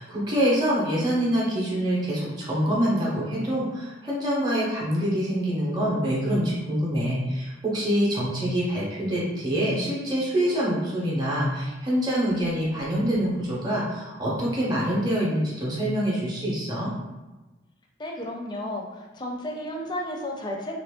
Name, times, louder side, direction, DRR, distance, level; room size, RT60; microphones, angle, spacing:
voice 1, 0.0-16.9, equal, 20° right, -6 dB, 0.7 m, -25 dB
voice 2, 18.0-20.7, left 1 dB, 25° left, 0 dB, 0.5 m, -33 dB
2.9 x 2.5 x 3.6 m, 1.1 s
head